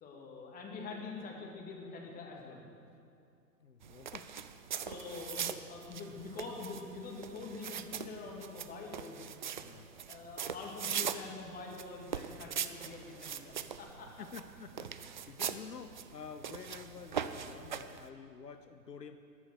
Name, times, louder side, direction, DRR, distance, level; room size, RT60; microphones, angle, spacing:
voice 1, 0.0-2.7 4.7-9.2 9.7-14.1, left 4 dB, 20° left, 0 dB, 2.2 m, -45 dB
voice 2, 3.6-4.3 5.4-5.6 9.6-9.9 14.2-19.2, left 6 dB, 80° left, 9 dB, 0.9 m, -49 dB
sound 1, 3.8-18.1, right 8 dB, 35° right, 0.4 m, -41 dB
14.5 x 11.0 x 6.3 m, 2.5 s
figure-of-eight pair, 105°, 48 cm